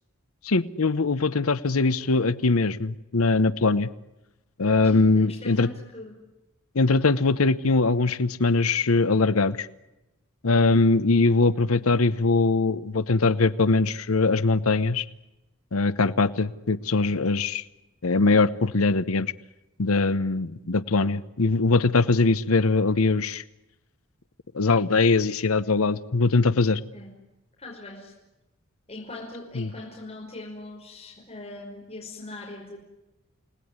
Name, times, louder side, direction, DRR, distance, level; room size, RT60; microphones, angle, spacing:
voice 1, 0.4-3.9 4.6-5.7 6.7-9.7 10.4-15.0 15.7-17.6 18.0-19.3 19.8-23.4 24.5-26.8 29.6-29.7, left 3 dB, 80° left, 15 dB, 0.9 m, -22 dB
voice 2, 4.8-6.2 26.9-27.1 27.6-28.1 28.9-32.8, left 2 dB, 30° left, -2 dB, 5.6 m, -41 dB
29.5 x 19.0 x 9.6 m, 0.96 s
head